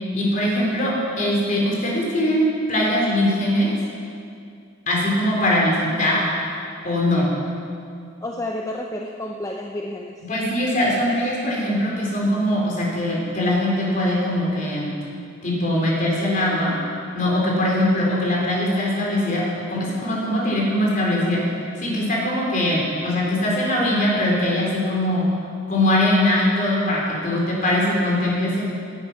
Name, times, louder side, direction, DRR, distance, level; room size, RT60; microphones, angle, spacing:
voice 1, 0.1-3.7 4.9-6.2 6.8-7.3 10.3-14.9 15.4-16.8 17.1-19.4 19.7-21.4 21.8-25.2 25.7-28.6, left 1 dB, 40° left, -4 dB, 3.9 m, -21 dB
voice 2, 8.2-10.2, left 1 dB, 15° left, 1 dB, 0.6 m, -30 dB
19.0 x 9.7 x 5.9 m, 2.4 s
head